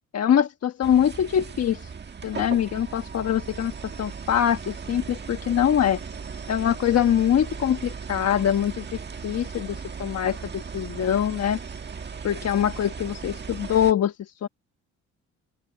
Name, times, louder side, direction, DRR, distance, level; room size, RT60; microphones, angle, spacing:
voice 1, 0.1-1.9 2.2-3.7 4.0-6.0 6.5-11.6 12.2-14.1 14.4-14.5, left 9 dB, 55° left, 1.3 m, -23 dB
sound 1, 0.8-13.9, right 5 dB, 35° right, 1.6 m, -37 dB
open air
cardioid pair, 90°, 30 cm